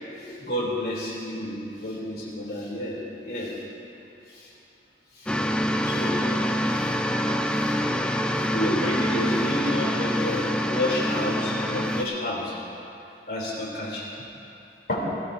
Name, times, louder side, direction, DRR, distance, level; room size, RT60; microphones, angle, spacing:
voice 1, 0.2-3.6 4.3-4.5 5.1-5.3 5.8-6.2 6.7-7.0 7.5-7.8 8.4-12.6 13.3-14.3 14.9-15.0, left 1 dB, 65° left, -5 dB, 3.6 m, -30 dB
sound 1, 5.3-12.0, equal, 5° left, 0.4 m, -26 dB
19.5 x 17.5 x 2.8 m, 2.7 s
head